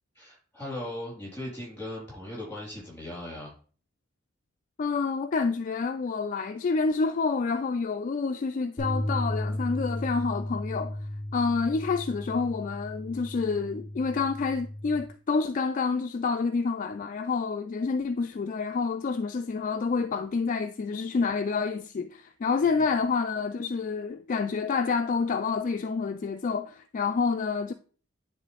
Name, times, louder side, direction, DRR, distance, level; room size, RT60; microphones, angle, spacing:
voice 1, 0.1-3.5 22.7-22.9, left 1 dB, 10° left, 3.7 m, -38 dB
voice 2, 4.8-11.0 11.3-27.7, left 4 dB, 40° left, 0.3 m, -28 dB
sound 1, 8.8-15.0, left 1 dB, 10° right, 3.1 m, -34 dB
9.8 x 3.8 x 3.3 m
head